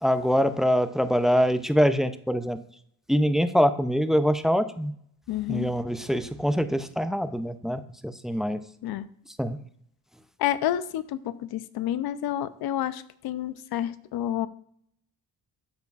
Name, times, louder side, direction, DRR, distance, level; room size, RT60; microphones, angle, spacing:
voice 1, 0.0-2.6 3.1-4.9 5.5-8.6 9.4-9.6, equal, ahead, 11 dB, 0.3 m, -24 dB
voice 2, 5.3-5.7 8.8-9.1 10.4-14.5, left 12 dB, 70° left, 15 dB, 0.6 m, -29 dB
13.5 x 4.5 x 2.4 m, 0.68 s
cardioid pair, 90°, 38 cm